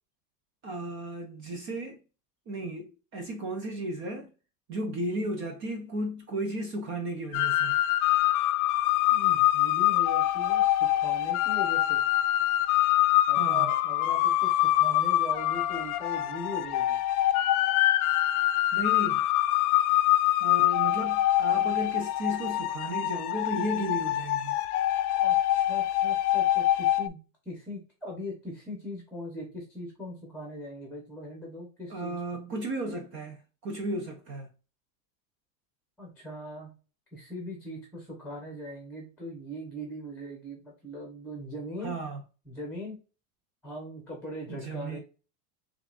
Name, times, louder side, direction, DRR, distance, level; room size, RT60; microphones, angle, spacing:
voice 1, 0.6-2.0 2.5-4.3 4.7-7.8 13.3-13.7 18.7-19.3 20.4-24.6 31.9-34.5 41.8-42.2 44.5-45.0, right 1 dB, 30° right, 0.4 m, -34 dB
sound 1, 7.3-27.1, left 14 dB, 70° left, 0.5 m, -25 dB
voice 2, 9.1-12.0 13.3-17.0 25.2-27.2 27.4-32.1 36.0-36.7 37.1-42.0 42.5-43.0 43.6-45.0, equal, 5° left, 0.9 m, -40 dB
6.6 x 2.4 x 2.4 m
supercardioid pair, 160°, 47 cm